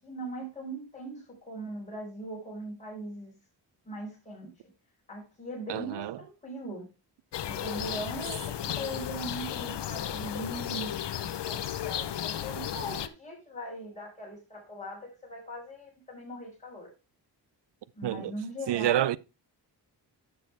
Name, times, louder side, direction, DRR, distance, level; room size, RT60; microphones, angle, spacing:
voice 1, 0.0-3.3 3.8-4.5 5.1-6.9 7.4-16.9 17.9-19.1, right 1 dB, 15° left, 4.6 m, -40 dB
voice 2, 5.7-6.2 18.0-18.3 18.7-19.2, right 12 dB, 70° right, 0.5 m, -28 dB
sound 1, 7.3-13.1, left 10 dB, 70° left, 0.8 m, -34 dB
10.5 x 7.0 x 3.4 m
wide cardioid pair, 120°, 43 cm